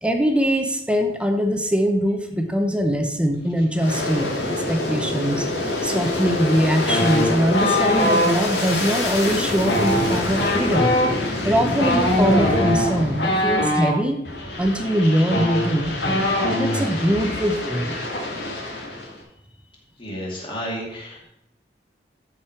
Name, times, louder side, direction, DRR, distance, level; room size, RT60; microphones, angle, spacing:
voice 1, 0.0-4.3 4.7-5.5 5.8-11.0 11.4-14.2 14.6-18.0, equal, 5° right, 5 dB, 0.8 m, -22 dB
Aircraft, 3.7-13.8 14.3-19.2, left 2 dB, 70° left, 2.2 m, -27 dB
sound 1, 6.9-8.3 9.6-14.0 14.9-15.0 15.2-16.9 17.2-17.4 17.7-18.2, left 1 dB, 85° left, 1.7 m, -22 dB
voice 2, 20.0-21.3, equal, 30° left, -3 dB, 2.6 m, -32 dB
13.0 x 5.1 x 4.5 m, 0.82 s
head